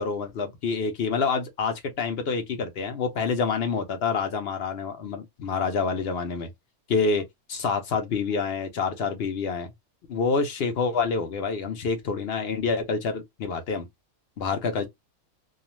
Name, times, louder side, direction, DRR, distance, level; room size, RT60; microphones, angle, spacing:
voice 1, 0.0-6.5 6.9-7.2 7.5-9.7 10.1-13.9 14.4-14.9, left 5 dB, 60° left, 0.7 m, -27 dB
2.4 x 2.3 x 2.9 m
omnidirectional pair, 1.5 m